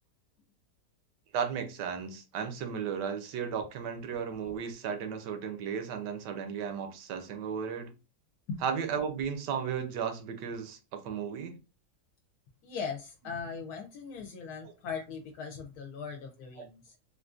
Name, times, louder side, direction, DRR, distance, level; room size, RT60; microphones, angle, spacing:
voice 1, 1.3-7.9 8.6-11.5 14.6-14.7 16.6-16.7, right 7 dB, 85° right, 1.3 m, -35 dB
voice 2, 12.6-16.9, left 5 dB, 70° left, 1.1 m, -39 dB
3.7 x 2.5 x 2.4 m
omnidirectional pair, 1.8 m